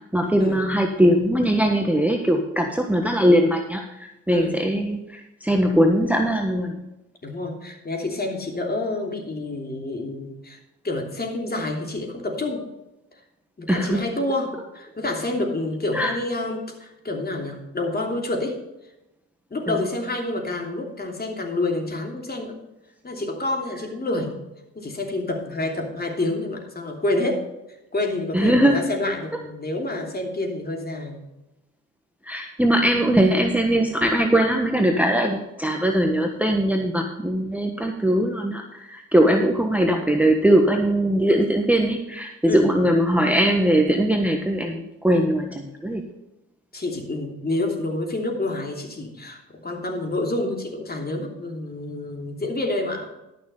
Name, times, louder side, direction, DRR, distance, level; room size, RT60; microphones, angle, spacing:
voice 1, 0.1-6.8 13.7-14.0 15.9-16.1 19.7-19.8 28.3-28.8 32.3-46.0, right 1 dB, 5° right, 3 dB, 1.3 m, -20 dB
voice 2, 4.3-4.6 7.2-10.6 10.8-12.6 13.6-18.6 19.5-22.5 23.0-24.3 24.7-27.4 27.9-31.2 42.4-42.7 46.7-53.1, left 2 dB, 30° left, 2 dB, 3.0 m, -28 dB
12.0 x 6.7 x 5.5 m, 0.93 s
supercardioid pair, 70°, 33 cm